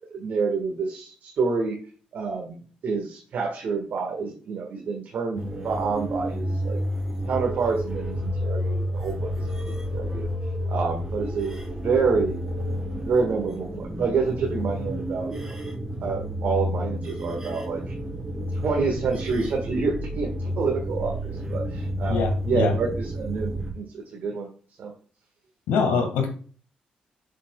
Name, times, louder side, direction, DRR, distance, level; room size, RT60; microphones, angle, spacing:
voice 1, 0.1-1.8 2.1-6.8 7.2-10.3 10.7-12.4 13.0-15.6 16.0-17.9 18.5-24.5 24.8-24.9, right 4 dB, 65° right, 1 dB, 1.6 m, -28 dB
sound 1, 5.3-23.7, equal, 15° right, 3.4 m, -30 dB
voice 2, 22.1-22.7 25.7-26.3, left 4 dB, 85° left, 5 dB, 1.7 m, -23 dB
7.3 x 7.1 x 2.3 m, 0.40 s
supercardioid pair, 50°, 3 cm